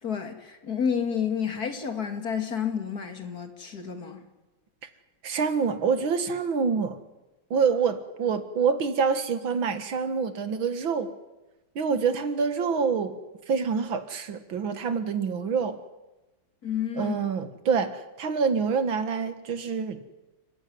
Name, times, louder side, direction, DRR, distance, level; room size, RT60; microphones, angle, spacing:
voice 1, 0.0-4.2 16.6-17.2, left 7 dB, 50° left, 2.8 m, -30 dB
voice 2, 5.2-7.0 7.5-11.1 11.8-13.2 13.5-15.8 17.0-20.0, right 5 dB, 85° right, 2.4 m, -26 dB
30.0 x 15.5 x 9.6 m
omnidirectional pair, 2.1 m